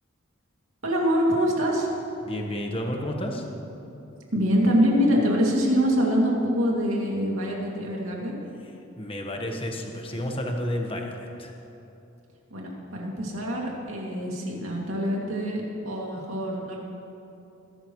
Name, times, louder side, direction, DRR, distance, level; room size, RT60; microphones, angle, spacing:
voice 1, 0.8-1.9 4.3-8.4 12.5-16.8, equal, 80° right, -2 dB, 2.5 m, -25 dB
voice 2, 2.2-3.5 9.0-11.5, equal, 25° left, 2 dB, 1.3 m, -31 dB
21.0 x 11.0 x 3.2 m, 2.9 s
head